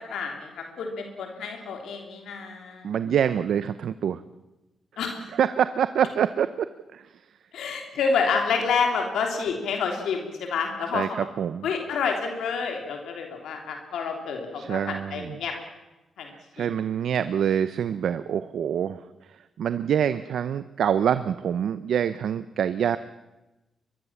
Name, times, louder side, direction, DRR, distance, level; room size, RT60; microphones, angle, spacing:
voice 1, 0.1-2.9 5.0-5.2 7.5-11.3 11.6-15.5 16.2-16.3 16.6-16.7, left 5 dB, 90° left, 3 dB, 3.2 m, -28 dB
voice 2, 2.8-4.2 5.3-6.7 6.9-7.0 10.9-11.6 14.6-15.4 16.3-19.0 19.6-23.0, right 8 dB, 75° right, 12 dB, 0.7 m, -25 dB
22.5 x 22.5 x 7.3 m, 1.0 s
cardioid pair, 85°, 0 cm